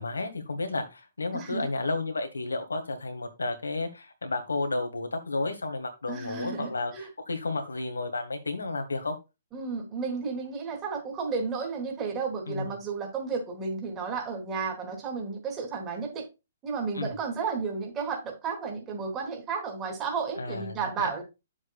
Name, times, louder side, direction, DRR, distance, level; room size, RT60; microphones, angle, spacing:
voice 1, 0.0-6.9 7.3-9.2 12.5-12.8 16.9-17.2 20.4-21.2, left 3 dB, 80° left, 1.9 m, -32 dB
voice 2, 1.3-1.7 6.1-7.1 9.5-16.2 16.6-21.2, right 5 dB, 20° right, 3.4 m, -33 dB
9.7 x 7.3 x 2.4 m
figure-of-eight pair, 125°, 0 cm